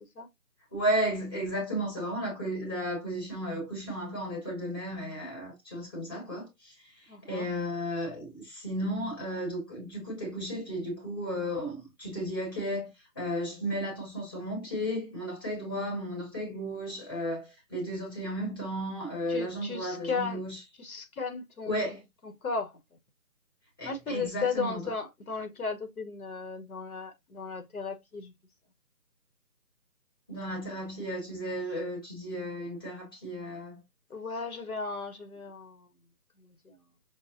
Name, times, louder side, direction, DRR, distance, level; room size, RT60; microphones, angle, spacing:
voice 1, 0.7-12.9 13.1-20.6 21.6-22.0 23.8-24.9 30.3-33.8, equal, 15° left, 1.0 m, -34 dB
voice 2, 7.1-7.5 19.3-20.4 20.8-21.8 22.4-22.7 23.8-28.3 34.1-35.9 36.4-36.8, left 5 dB, 60° left, 1.0 m, -35 dB
5.5 x 2.1 x 2.6 m
figure-of-eight pair, 165°, 48 cm